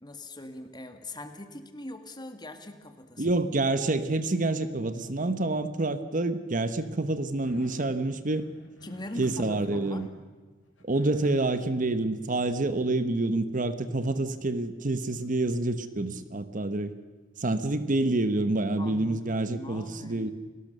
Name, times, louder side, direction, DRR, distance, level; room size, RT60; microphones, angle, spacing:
voice 1, 0.0-3.3 8.8-10.1 18.8-20.3, left 1 dB, 20° left, 7 dB, 2.0 m, -42 dB
voice 2, 3.2-8.4 9.2-10.1 10.8-16.9 17.4-20.3, right 2 dB, 40° right, 11 dB, 1.0 m, -27 dB
sound 1, 7.4-10.1 10.6-11.7 14.5-14.6 15.2-15.4, equal, 70° left, 4.4 m, -52 dB
29.5 x 18.5 x 6.7 m, 1.4 s
head